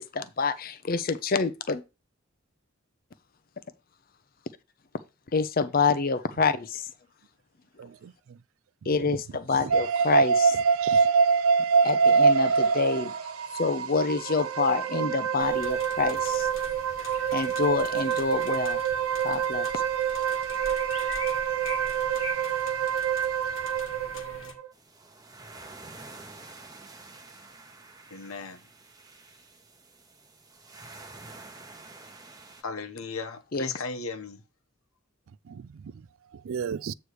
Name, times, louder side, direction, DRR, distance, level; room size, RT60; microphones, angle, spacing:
voice 1, 0.0-1.8 5.3-6.9 8.9-10.6 11.8-13.1 13.5-16.5 17.3-18.8 19.2-19.7 33.5-33.7, left 4 dB, 40° left, 0.6 m, -27 dB
voice 2, 7.8-8.4 8.8-9.2 9.5-9.8 10.8-11.1 35.3-36.9, right 7 dB, 70° right, 0.3 m, -38 dB
sound 1, 9.7-24.7, right 6 dB, 85° right, 0.7 m, -25 dB
sound 2, 15.4-24.5, left 4 dB, 65° left, 1.3 m, -43 dB
voice 3, 22.1-22.7 23.2-23.3 28.1-28.6 32.6-34.4, left 4 dB, 80° left, 1.0 m, -37 dB
sound 3, 24.7-32.6, right 3 dB, 15° right, 0.8 m, -48 dB
8.3 x 3.2 x 6.2 m
head